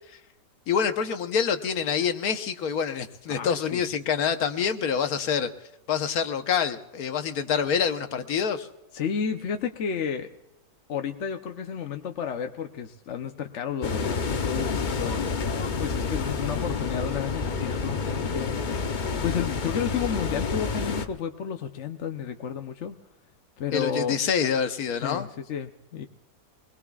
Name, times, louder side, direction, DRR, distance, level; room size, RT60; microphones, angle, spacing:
voice 1, 0.7-5.5 5.9-8.7 23.7-25.3, left 7 dB, 75° left, 8 dB, 1.4 m, -26 dB
voice 2, 3.3-3.8 8.9-10.3 10.9-15.3 15.8-18.6 19.2-23.0 23.6-24.2 25.0-26.1, left 7 dB, 55° left, 5 dB, 1.0 m, -31 dB
sound 1, 13.8-21.1, left 5 dB, 40° left, 0.8 m, -29 dB
23.5 x 21.0 x 2.4 m, 0.95 s
omnidirectional pair, 1.6 m